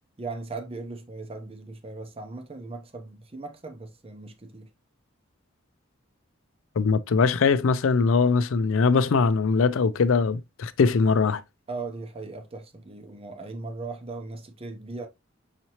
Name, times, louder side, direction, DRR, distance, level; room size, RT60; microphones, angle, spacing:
voice 1, 0.2-4.7 11.7-15.1, right 3 dB, 30° right, 0.7 m, -38 dB
voice 2, 6.8-11.4, left 4 dB, 80° left, 0.4 m, -21 dB
5.8 x 2.8 x 2.9 m
head